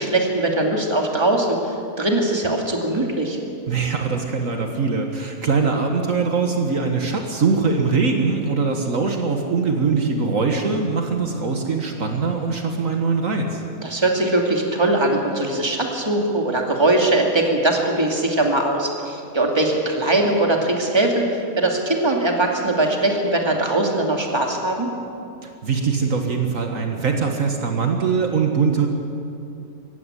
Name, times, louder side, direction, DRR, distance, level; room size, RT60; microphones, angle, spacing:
voice 1, 0.0-3.4 13.8-24.9, right 2 dB, 20° right, 1 dB, 2.4 m, -21 dB
voice 2, 3.7-13.6 25.4-28.9, right 4 dB, 65° right, 3 dB, 1.9 m, -22 dB
16.5 x 16.0 x 9.9 m, 2.5 s
omnidirectional pair, 1.5 m